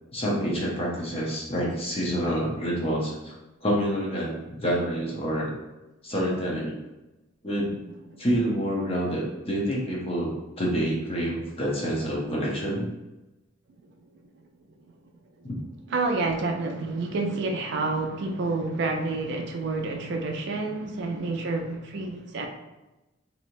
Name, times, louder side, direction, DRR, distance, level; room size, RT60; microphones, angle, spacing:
voice 1, 0.1-3.4 3.6-5.5 6.0-6.8 7.4-7.8 8.2-10.3 10.6-12.9 15.4-15.6, equal, 30° left, -4 dB, 0.8 m, -27 dB
voice 2, 15.9-22.5, right 3 dB, 55° right, 2 dB, 0.4 m, -29 dB
3.1 x 2.8 x 2.6 m, 1.0 s
head